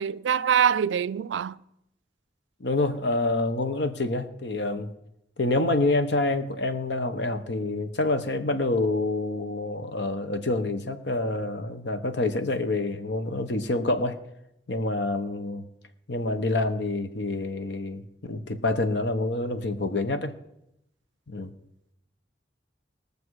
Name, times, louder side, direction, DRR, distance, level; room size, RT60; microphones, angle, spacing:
voice 1, 0.0-1.6, right 8 dB, 90° right, 0.4 m, -24 dB
voice 2, 2.6-4.9 5.4-14.2 14.7-15.6 16.1-20.4 21.3-21.5, left 2 dB, 70° left, 1.0 m, -27 dB
20.5 x 6.8 x 4.8 m
head